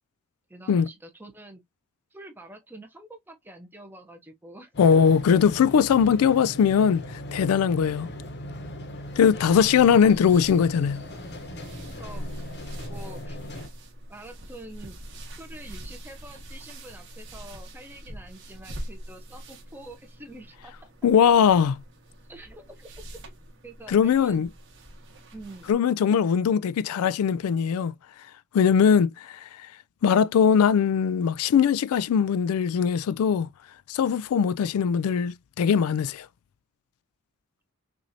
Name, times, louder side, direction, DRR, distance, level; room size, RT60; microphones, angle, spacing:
voice 1, 0.5-1.6 2.1-5.0 9.4-9.7 10.0-10.1 12.0-12.2 12.9-13.4 14.1-15.0 15.3-20.7 22.3-23.1 23.6-24.4 25.3-25.7, right 1 dB, 10° right, 0.9 m, -46 dB
sound 1, 4.7-13.7, left 1 dB, 50° left, 1.0 m, -39 dB
voice 2, 4.8-8.1 9.2-11.0 21.0-21.8 23.9-24.5 25.7-27.9 28.5-29.4 30.0-33.5 33.9-36.3, left 7 dB, 85° left, 0.3 m, -21 dB
sound 2, 9.0-25.7, equal, 55° right, 1.6 m, -43 dB
6.0 x 2.6 x 2.7 m
head